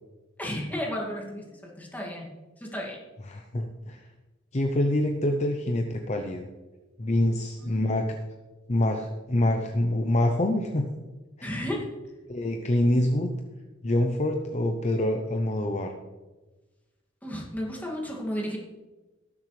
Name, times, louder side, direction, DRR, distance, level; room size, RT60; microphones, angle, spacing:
voice 1, 0.4-3.0 7.6-7.8 11.4-11.9 17.2-18.6, equal, 10° left, -2 dB, 2.4 m, -33 dB
voice 2, 3.3-4.0 4.5-6.5 7.0-8.2 8.7-10.9 11.4-11.5 12.3-13.3 13.8-15.9, left 1 dB, 35° left, 4 dB, 0.7 m, -26 dB
18.5 x 7.3 x 3.3 m, 1.2 s
head